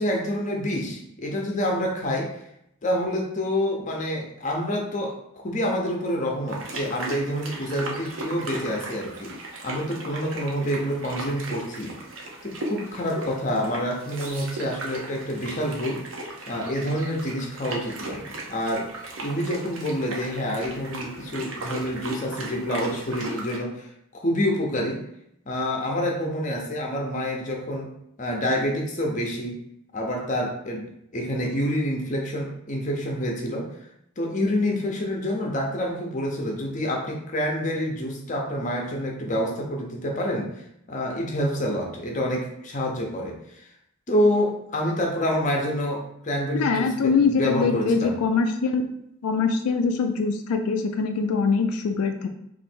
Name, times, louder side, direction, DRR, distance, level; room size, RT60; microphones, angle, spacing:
voice 1, 0.0-2.4 2.8-11.9 12.4-16.0 16.5-18.9 19.2-25.0 25.5-27.9 28.2-29.6 29.9-30.8 31.1-33.7 34.2-43.6 44.1-48.2, equal, 35° left, 0 dB, 0.7 m, -27 dB
sound 1, 6.5-23.6, right 2 dB, 65° right, 0.7 m, -36 dB
voice 2, 46.5-48.8 49.2-52.3, left 5 dB, 90° left, 6 dB, 0.4 m, -23 dB
3.1 x 2.6 x 4.3 m, 0.77 s
head